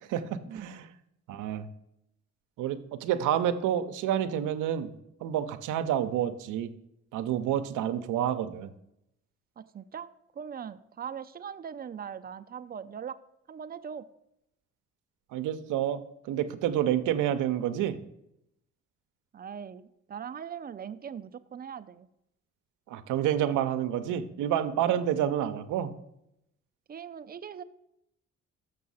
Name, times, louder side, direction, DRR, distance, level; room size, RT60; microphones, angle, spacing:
voice 1, 0.1-0.8 1.3-1.7 2.6-4.9 5.2-6.7 7.1-8.7 15.3-16.0 16.3-18.0 22.9-25.9, right 10 dB, 85° right, 10 dB, 0.6 m, -29 dB
voice 2, 9.6-13.2 13.5-14.1 19.3-22.1 26.9-27.6, right 7 dB, 30° right, 12 dB, 0.4 m, -40 dB
6.7 x 6.2 x 5.5 m, 0.82 s
cardioid pair, 90°, 30 cm